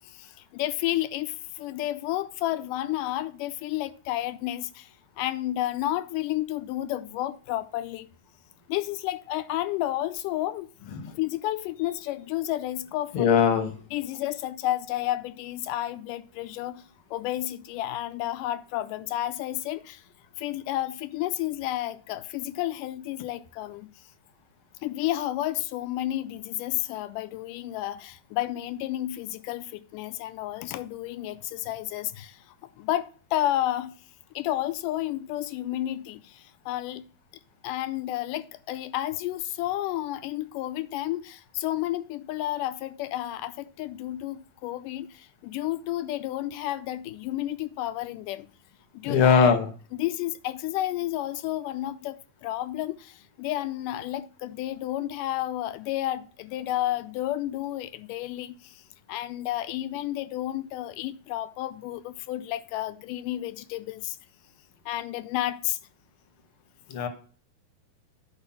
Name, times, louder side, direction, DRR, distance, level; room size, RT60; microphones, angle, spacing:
voice 1, 0.0-8.1 8.7-10.7 11.2-13.3 13.9-16.8 17.1-20.0 20.4-23.9 24.8-32.4 32.8-33.9 34.4-37.1 37.6-48.5 48.9-49.6 49.9-58.8 59.1-64.2 64.9-65.8, left 14 dB, 80° left, 2.0 m, -31 dB
voice 2, 13.1-13.7 49.0-49.7 66.9-67.1, left 6 dB, 60° left, 1.4 m, -20 dB
9.6 x 4.8 x 5.9 m
omnidirectional pair, 4.0 m